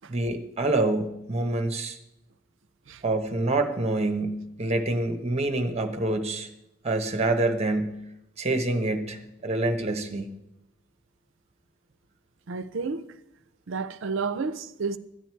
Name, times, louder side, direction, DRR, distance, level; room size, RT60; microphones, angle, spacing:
voice 1, 0.1-2.0 3.0-6.5 6.8-8.0 8.4-10.3, right 2 dB, 30° right, 1.0 m, -26 dB
voice 2, 12.5-13.1 13.7-15.0, right 4 dB, 65° right, 0.6 m, -31 dB
12.5 x 9.2 x 4.6 m
head